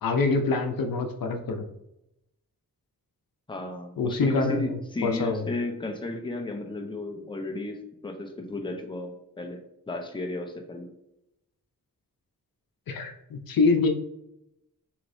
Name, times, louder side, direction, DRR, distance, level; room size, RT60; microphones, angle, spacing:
voice 1, 0.0-1.6 4.0-5.5 12.9-13.9, left 3 dB, 85° left, 5 dB, 0.7 m, -25 dB
voice 2, 3.5-7.8 8.0-10.9, left 2 dB, 15° left, 3 dB, 0.7 m, -33 dB
6.4 x 3.1 x 2.7 m, 0.84 s
wide cardioid pair, 115°, 34 cm